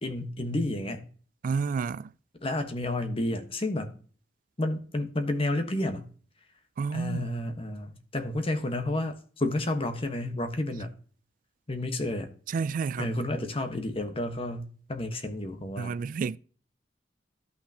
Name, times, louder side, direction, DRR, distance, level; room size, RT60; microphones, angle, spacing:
voice 1, 0.0-1.1 2.4-3.9 4.6-6.1 6.9-10.9 11.7-12.3 13.0-15.9, left 1 dB, 35° left, 1.3 m, -31 dB
voice 2, 1.4-2.1 6.8-7.3 12.5-13.1 15.8-16.4, right 5 dB, 50° right, 0.3 m, -30 dB
13.0 x 5.9 x 2.8 m
head